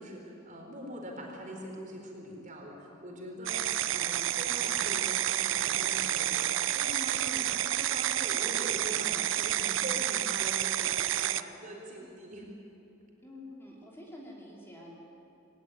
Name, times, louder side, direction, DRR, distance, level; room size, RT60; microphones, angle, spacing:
voice 1, 0.0-12.5, equal, 40° right, 0 dB, 4.5 m, -43 dB
sound 1, 3.5-11.4, right 12 dB, 65° right, 0.6 m, -30 dB
voice 2, 13.2-14.9, left 1 dB, 10° left, -3 dB, 3.2 m, -47 dB
22.5 x 18.0 x 9.7 m, 2.9 s
head